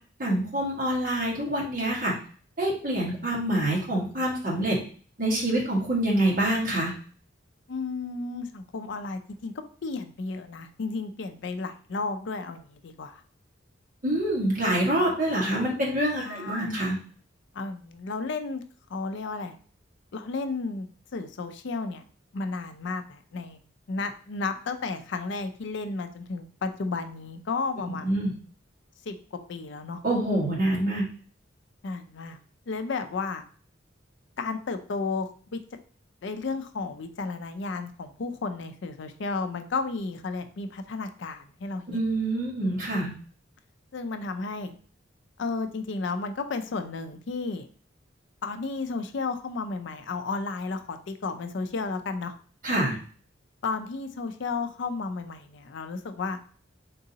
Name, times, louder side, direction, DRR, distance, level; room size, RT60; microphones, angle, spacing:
voice 1, 0.2-2.1 2.6-4.8 5.2-6.9 14.0-17.0 27.9-28.3 30.0-31.0 41.9-43.1 52.6-53.0, right 1 dB, 45° right, -4 dB, 1.5 m, -26 dB
voice 2, 7.7-9.5 9.8-13.2 16.2-16.8 17.5-18.6 18.9-19.5 20.1-20.9 21.1-22.0 22.3-23.6 23.9-28.1 29.1-30.0 31.8-32.4 32.7-33.4 34.4-35.6 36.2-42.0 43.9-44.7 45.4-47.7 48.4-52.3 53.6-56.4, left 4 dB, 60° left, 8 dB, 0.4 m, -33 dB
4.0 x 3.7 x 2.7 m, 0.43 s
head